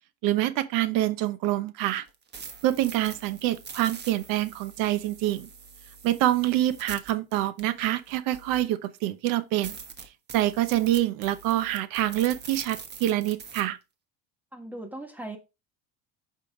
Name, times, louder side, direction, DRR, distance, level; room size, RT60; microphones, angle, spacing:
voice 1, 0.2-2.0 2.6-5.5 6.0-9.8 10.3-13.8, right 14 dB, 70° right, 1.0 m, -26 dB
sound 1, 2.1-8.9 9.3-9.4 9.6-13.6, right 6 dB, 30° right, 1.2 m, -44 dB
voice 2, 14.5-15.4, right 1 dB, 5° right, 1.5 m, -38 dB
8.5 x 5.6 x 3.2 m
cardioid pair, 130°, 36 cm